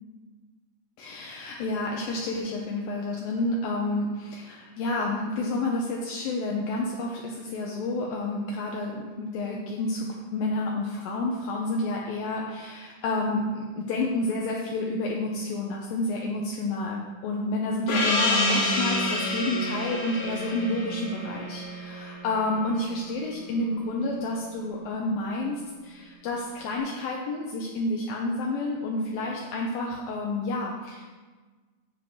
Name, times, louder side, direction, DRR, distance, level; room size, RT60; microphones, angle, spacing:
voice 1, 1.0-31.0, left 2 dB, 80° left, -1 dB, 2.2 m, -30 dB
Gong, 17.9-22.9, left 2 dB, 65° left, 2.1 m, -28 dB
7.7 x 7.4 x 4.7 m, 1.4 s
omnidirectional pair, 4.9 m